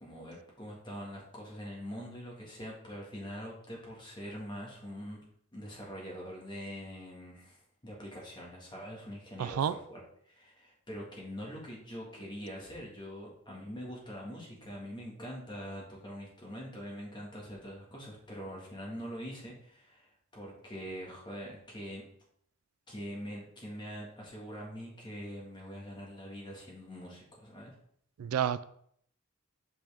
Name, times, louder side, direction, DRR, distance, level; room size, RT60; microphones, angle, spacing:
voice 1, 0.0-5.2 5.5-22.0 22.9-27.8, equal, 20° left, -3 dB, 1.8 m, -44 dB
voice 2, 9.4-9.7 28.2-28.6, right 9 dB, 75° right, 14 dB, 0.3 m, -30 dB
6.0 x 5.3 x 3.5 m, 0.65 s
head